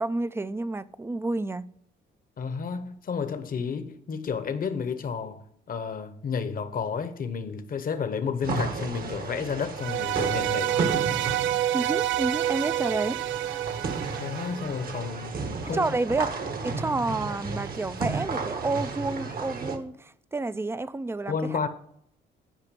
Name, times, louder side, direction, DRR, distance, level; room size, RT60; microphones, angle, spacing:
voice 1, 0.0-1.7 11.7-13.2 15.7-16.3 16.6-21.7, right 2 dB, 10° right, 0.5 m, -30 dB
voice 2, 2.4-5.4 5.7-10.8 14.2-15.9 21.3-21.7, left 6 dB, 45° left, 1.0 m, -31 dB
sound 1, 8.4-19.8, right 4 dB, 50° right, 1.3 m, -33 dB
sound 2, 9.8-15.0, right 13 dB, 75° right, 0.4 m, -28 dB
9.1 x 5.0 x 6.9 m
cardioid pair, 90°, 20 cm